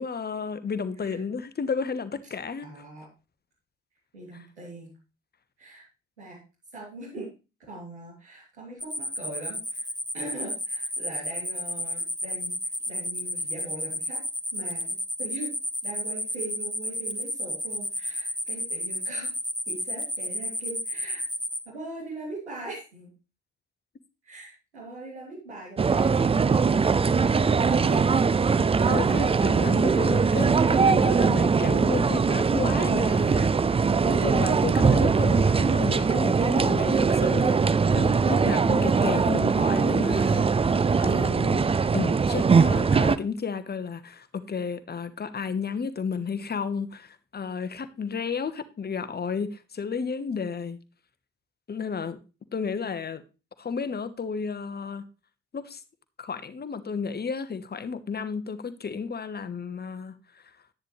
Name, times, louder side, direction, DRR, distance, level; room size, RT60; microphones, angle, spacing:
voice 1, 0.0-2.7 28.9-50.8 51.7-52.2 52.5-53.2 53.6-55.1 55.5-55.8 56.2-60.1, left 5 dB, 30° left, 1.2 m, -32 dB
voice 2, 2.6-3.1 4.1-4.9 5.6-5.8 6.2-6.4 6.7-7.3 7.7-9.9 10.1-12.6 12.9-14.2 14.5-15.5 15.8-19.3 19.7-21.2 21.6-23.1 24.2-28.2 29.4-30.5, right 2 dB, 85° right, 3.0 m, -41 dB
sound 1, 8.8-21.6, left 1 dB, ahead, 2.1 m, -31 dB
sound 2, 25.8-43.2, right 5 dB, 15° right, 0.5 m, -21 dB
10.0 x 9.8 x 3.3 m
figure-of-eight pair, 45°, 33 cm